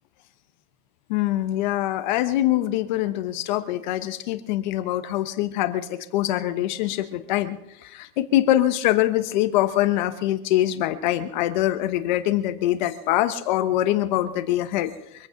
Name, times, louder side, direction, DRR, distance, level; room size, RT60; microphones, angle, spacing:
voice 1, 1.1-15.3, left 14 dB, 30° left, 11 dB, 1.1 m, -24 dB
24.5 x 9.0 x 5.2 m, 0.81 s
supercardioid pair, 175°, 49 cm